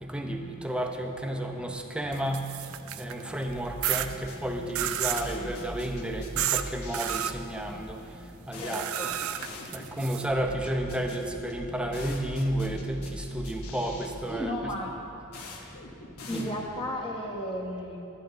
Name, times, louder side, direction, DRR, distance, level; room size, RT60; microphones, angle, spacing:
voice 1, 0.0-2.5 3.0-8.9 9.7-14.7 16.3-16.5, right 1 dB, 5° right, 3 dB, 0.6 m, -32 dB
sound 1, 2.1-3.2 3.8-4.1 4.7-5.3 6.4-6.6 6.9-7.3 8.7-10.2, right 12 dB, 70° right, 0.4 m, -30 dB
sound 2, 3.4-17.0, left 1 dB, 75° left, 1.1 m, -43 dB
voice 2, 8.6-9.2 14.3-14.9 16.3-18.0, equal, 25° left, -1 dB, 1.3 m, -34 dB
12.0 x 10.0 x 3.9 m, 2.8 s
head